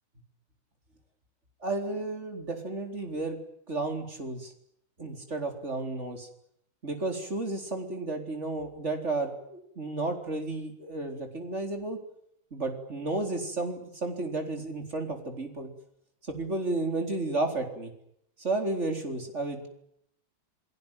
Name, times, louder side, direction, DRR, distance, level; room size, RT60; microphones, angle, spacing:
voice 1, 1.6-3.4 3.7-4.5 5.0-6.3 6.8-12.0 12.5-15.7 16.2-17.9 18.4-19.7, right 2 dB, 35° right, 5 dB, 4.5 m, -32 dB
29.0 x 18.5 x 9.2 m, 0.74 s
omnidirectional pair, 2.1 m